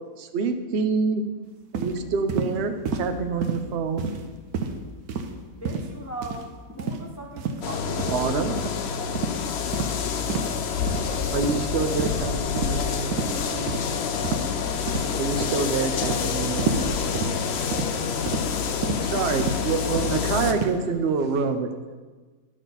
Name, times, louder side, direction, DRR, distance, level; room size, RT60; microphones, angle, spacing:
voice 1, 0.2-1.2 1.7-2.7 3.0-4.1 8.1-8.5 11.3-13.7 15.2-17.0 19.0-22.0, right 5 dB, 55° right, 7 dB, 0.8 m, -27 dB
sound 1, 1.7-1.9 2.3-2.5 2.9-3.1 3.4-3.6 4.0-4.3 4.5-4.8 5.1-5.3 5.7-5.9 6.2-6.4 6.8-7.0 7.4-7.6 8.0-8.2 8.6-8.8 9.2-9.4 9.7-9.9 10.3-10.5 10.9-11.1 11.4-11.7 12.0-12.2 12.6-12.8 13.1-13.3 13.7-13.8 14.2-14.5 14.9-15.2 15.4-15.6 16.0-16.2 16.6-16.8 17.2-17.4 17.7-17.9 18.3-18.5 18.8-19.0 19.4-19.6 20.0-20.1 20.5-20.8, right 5 dB, 80° right, 1.2 m, -29 dB
voice 2, 5.5-6.4 6.8-8.3, right 2 dB, 20° left, 1 dB, 0.4 m, -38 dB
sound 2, 7.6-20.5, left 6 dB, 60° left, 0.7 m, -27 dB
voice 3, 10.8-11.4 14.6-15.4 18.8-19.1 20.8-20.9 21.2-21.4, right 1 dB, 5° right, -9 dB, 2.2 m, -43 dB
11.0 x 6.4 x 4.0 m, 1.4 s
omnidirectional pair, 1.6 m